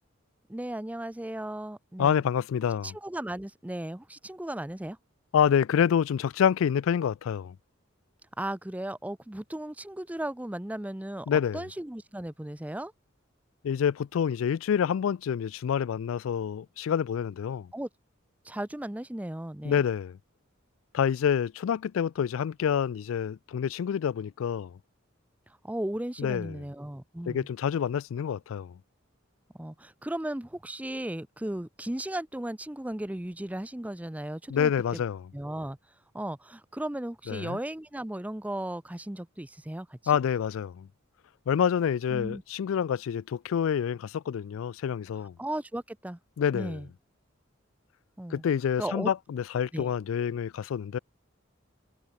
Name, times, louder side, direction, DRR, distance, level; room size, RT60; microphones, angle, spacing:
voice 1, 0.5-2.2 2.8-5.0 8.4-12.9 17.7-17.9 18.5-19.8 25.6-27.5 29.6-35.0 35.3-35.8 36.1-40.0 42.1-42.4 45.4-46.2 46.5-46.9 48.2-48.4 48.8-49.1 49.7-49.9, right 1 dB, 5° right, 0.5 m, -36 dB
voice 2, 2.0-2.9 5.3-7.5 11.3-11.6 13.6-17.7 19.6-20.2 20.9-24.7 26.2-26.6 27.3-28.7 34.5-35.3 37.3-37.6 40.1-40.9 41.5-45.3 46.4-46.8 48.3-51.0, left 8 dB, 80° left, 0.3 m, -27 dB
head